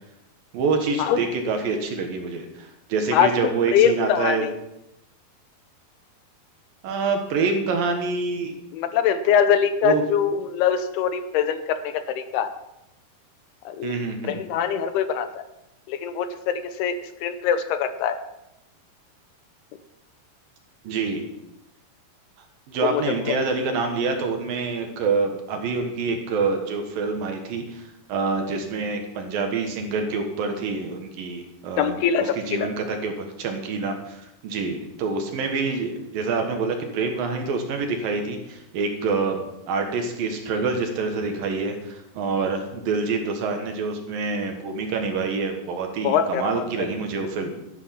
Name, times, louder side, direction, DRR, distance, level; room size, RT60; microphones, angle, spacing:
voice 1, 0.5-4.5 6.8-8.6 9.8-10.0 13.8-14.4 20.8-21.2 22.7-47.5, right 4 dB, 65° right, 4 dB, 2.9 m, -26 dB
voice 2, 3.7-4.4 8.7-12.5 13.7-14.0 14.2-15.4 15.9-17.0 17.2-18.2 22.8-23.0 31.8-32.7 46.0-46.9, left 8 dB, 80° left, 10 dB, 2.7 m, -23 dB
12.5 x 10.5 x 5.8 m, 0.88 s
omnidirectional pair, 4.8 m